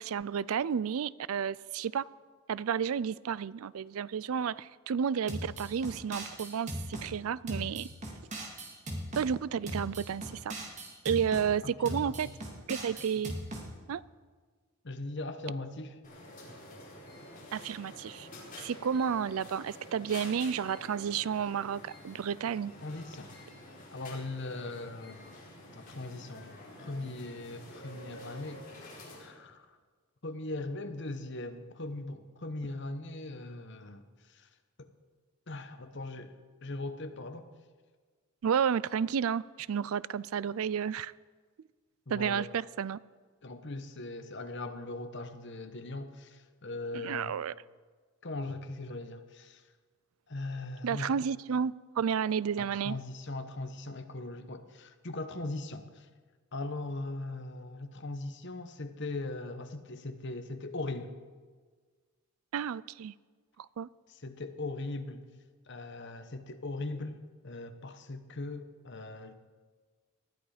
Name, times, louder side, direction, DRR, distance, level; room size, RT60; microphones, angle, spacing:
voice 1, 0.0-2.1 2.5-7.9 9.2-10.5 11.0-12.3 12.7-13.3 13.9-14.0 17.5-18.3 18.6-22.7 38.4-41.1 42.1-43.0 46.9-47.5 50.8-53.0 62.5-63.1 63.8-63.9, right 7 dB, 75° right, 0.4 m, -31 dB
sound 1, 5.3-7.1 7.5-9.3 9.7-11.5 11.9-13.7, right 1 dB, 35° right, 2.5 m, -39 dB
voice 2, 11.6-12.1 14.8-16.0 22.8-23.5 23.9-25.3 25.7-28.9 29.2-29.7 30.2-34.0 34.3-34.5 34.8-34.9 35.5-36.3 36.6-37.5 42.1-42.5 43.4-47.3 48.2-49.6 50.3-51.1 52.6-56.1 56.5-61.1 64.1-65.2 65.7-69.3, left 2 dB, 55° left, 1.2 m, -40 dB
sound 2, 16.0-29.3, left 1 dB, 40° left, 5.2 m, -49 dB
20.0 x 13.0 x 5.0 m
head